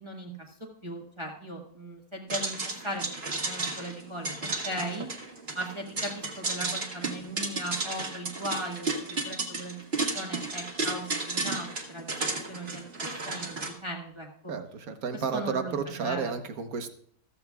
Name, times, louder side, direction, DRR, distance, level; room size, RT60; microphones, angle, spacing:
voice 1, 0.0-2.6 2.8-4.3 4.6-5.1 5.5-9.8 10.1-12.1 12.5-14.3 15.1-15.7 16.0-16.3, right 1 dB, 20° right, -1 dB, 1.5 m, -38 dB
sound 1, 2.3-13.7, right 3 dB, 40° right, 1.9 m, -33 dB
voice 2, 14.5-16.9, right 5 dB, 70° right, 8 dB, 1.5 m, -32 dB
14.5 x 14.5 x 2.3 m, 0.62 s
omnidirectional pair, 1.6 m